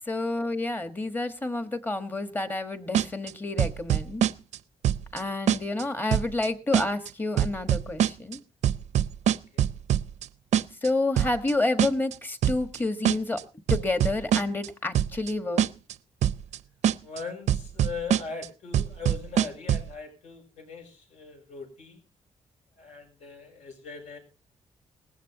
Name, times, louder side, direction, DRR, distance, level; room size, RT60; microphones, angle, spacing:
voice 1, 0.1-4.2 5.1-8.4 10.8-13.4 13.7-15.7, left 2 dB, 15° left, 9 dB, 1.4 m, -29 dB
sound 1, 2.9-3.3 3.6-4.6 4.8-5.2 5.5-5.8 6.1-6.5 6.7-7.1 7.4-8.4 8.6-10.3 10.5-10.9 11.2-11.5 11.8-12.1 12.4-12.8 13.0-13.4 13.7-14.7 14.9-15.3 15.6-15.9 16.2-16.6 16.8-17.2 17.5-18.5 18.7-19.9, right 10 dB, 75° right, 0.6 m, -24 dB
voice 2, 9.2-9.6 17.0-22.0 22.8-24.2, left 5 dB, 70° left, 4 dB, 7.3 m, -40 dB
19.5 x 15.5 x 2.9 m, 0.32 s
wide cardioid pair, 160°, 12 cm